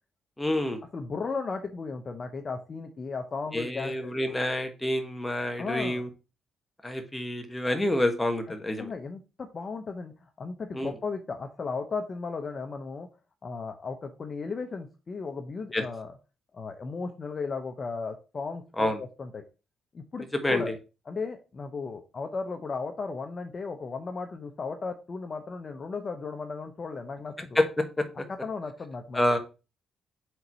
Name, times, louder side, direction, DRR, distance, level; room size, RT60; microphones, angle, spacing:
voice 1, 0.4-0.8 3.5-6.1 6.8-8.9 10.7-10.9 15.7-15.8 18.8-19.0 20.3-20.7 27.5-28.2 29.1-29.4, left 1 dB, 10° left, 5 dB, 1.3 m, -28 dB
voice 2, 0.9-4.1 5.6-6.0 8.8-13.1 13.4-16.1 16.5-18.9 19.2-19.4 19.9-20.7 21.1-27.6 28.3-29.2, left 4 dB, 40° left, 5 dB, 0.8 m, -35 dB
4.6 x 3.9 x 5.5 m, 0.31 s
cardioid pair, 90°, 0 cm